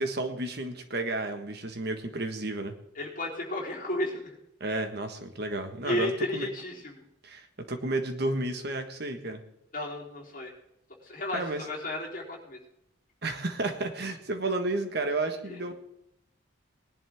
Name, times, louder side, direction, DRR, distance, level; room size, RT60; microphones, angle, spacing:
voice 1, 0.0-2.7 4.6-6.5 7.2-9.4 11.3-11.6 13.2-15.7, right 2 dB, 55° right, 6 dB, 1.6 m, -32 dB
voice 2, 2.9-4.4 5.8-7.0 9.7-10.5 11.0-12.6 15.5-15.6, left 1 dB, 40° left, -3 dB, 3.7 m, -33 dB
20.0 x 11.0 x 3.7 m, 0.79 s
head